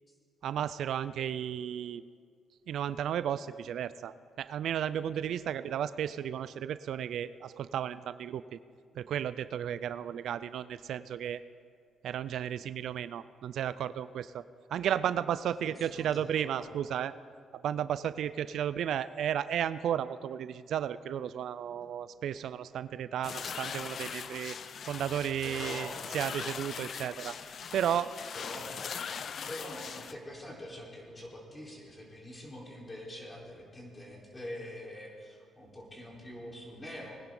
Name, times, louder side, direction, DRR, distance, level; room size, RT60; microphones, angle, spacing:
voice 1, 0.4-2.0 2.7-8.6 9.0-11.4 12.0-14.4 14.7-17.1 17.6-24.6 24.9-27.4 27.7-28.1, right 9 dB, 70° right, 15 dB, 0.4 m, -33 dB
voice 2, 15.6-16.8 21.6-21.8 25.4-26.0 28.3-28.7 29.5-37.2, left 1 dB, 20° left, -3 dB, 3.9 m, -45 dB
sound 1, 23.2-30.1, left 7 dB, 55° left, 0.5 m, -40 dB
21.0 x 10.5 x 3.8 m, 2.1 s
cardioid pair, 90°, 0 cm